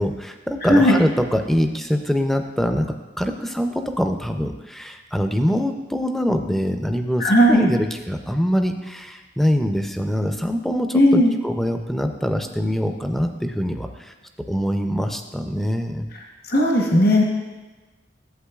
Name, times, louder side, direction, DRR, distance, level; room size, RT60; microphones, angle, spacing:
voice 1, 0.0-14.1 14.5-16.1, equal, ahead, 6 dB, 0.4 m, -24 dB
voice 2, 0.6-0.9 7.2-7.6 10.9-11.3 16.5-17.2, equal, 55° left, 0 dB, 0.9 m, -15 dB
11.5 x 7.9 x 2.3 m, 1.2 s
head